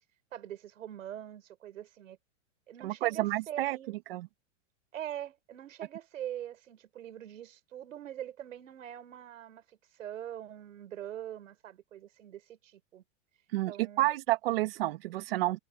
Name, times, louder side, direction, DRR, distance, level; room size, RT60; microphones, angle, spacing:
voice 1, 0.3-2.2 2.7-3.9 4.9-9.6 10.0-13.0 13.7-14.1, right 11 dB, 90° right, 7.0 m, -43 dB
voice 2, 2.8-3.8 4.1-4.3 13.5-15.6, right 17 dB, 50° right, 2.5 m, -30 dB
supercardioid pair, 175°, 38 cm